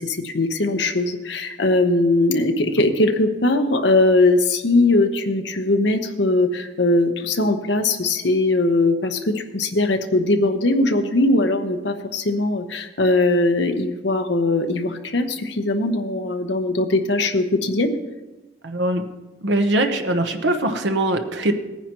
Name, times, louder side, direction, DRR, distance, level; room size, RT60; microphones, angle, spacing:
voice 1, 0.0-18.0, left 2 dB, 75° left, 6 dB, 0.9 m, -20 dB
voice 2, 18.6-19.1 19.4-21.5, right 1 dB, 80° right, 5 dB, 1.0 m, -21 dB
18.0 x 9.9 x 3.0 m, 1.1 s
head